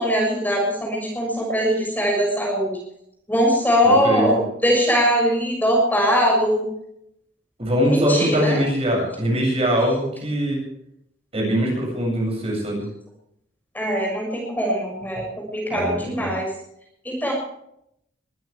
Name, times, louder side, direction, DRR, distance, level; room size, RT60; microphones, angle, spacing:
voice 1, 0.0-2.8 3.3-6.7 7.8-8.6 13.7-16.5 17.0-17.3, equal, 10° left, -1 dB, 6.5 m, -21 dB
voice 2, 7.6-10.6 11.3-12.9 15.7-16.3, equal, 30° right, -1 dB, 7.6 m, -22 dB
22.5 x 15.5 x 3.5 m, 0.74 s
head